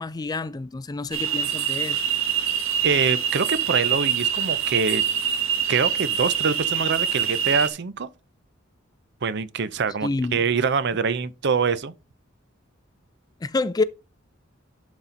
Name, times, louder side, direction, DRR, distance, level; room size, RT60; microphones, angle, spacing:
voice 1, 0.0-2.0 10.0-10.4 13.4-13.8, left 3 dB, 20° left, 0.3 m, -28 dB
sound 1, 1.1-7.7, right 8 dB, 80° right, 1.3 m, -24 dB
voice 2, 2.8-5.0 5.7-8.1 9.2-11.9, right 5 dB, 60° right, 0.6 m, -24 dB
11.5 x 4.2 x 3.9 m
head